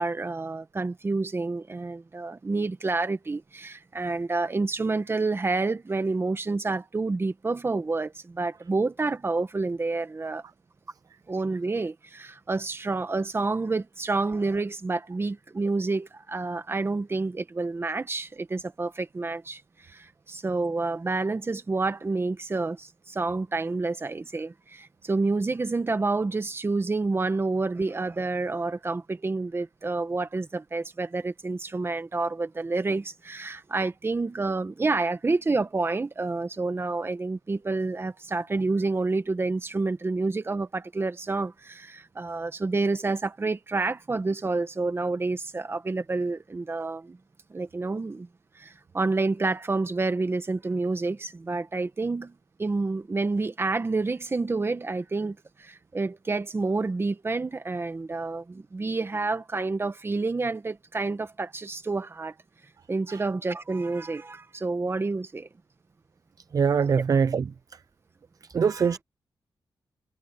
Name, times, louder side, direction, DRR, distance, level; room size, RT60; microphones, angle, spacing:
voice 1, 0.0-10.4 11.3-47.2 47.5-48.3 48.5-62.3 62.9-65.5 68.6-69.0, right 3 dB, 30° right, 1.6 m, -29 dB
voice 2, 66.5-67.5 68.5-69.0, right 6 dB, 45° right, 0.5 m, -23 dB
cardioid pair, 100°, 8 cm